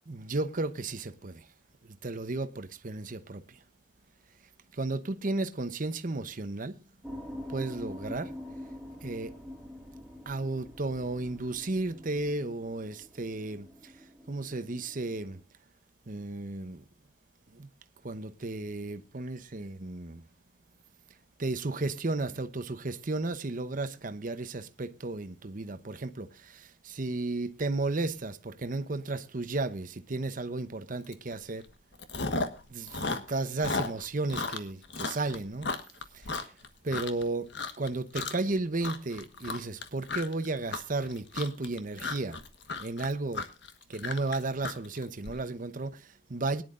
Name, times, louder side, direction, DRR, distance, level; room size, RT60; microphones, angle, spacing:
voice 1, 0.1-1.5 2.0-3.6 4.7-6.8 7.5-8.3 9.0-9.3 10.3-13.9 14.3-15.4 16.1-16.8 17.5-17.7 18.0-20.2 21.4-31.7 32.7-35.7 36.1-36.5 36.8-37.5 37.8-42.4 42.8-43.4 43.9-46.6, right 2 dB, 45° right, 0.9 m, -34 dB
sound 1, 7.0-15.4, left 1 dB, ahead, 2.4 m, -45 dB
Chewing mastication, 31.1-31.3 31.6-32.6 32.9-37.2 37.5-37.9 38.1-38.5 38.8-45.3, left 3 dB, 65° left, 1.4 m, -35 dB
22.0 x 10.5 x 2.5 m
head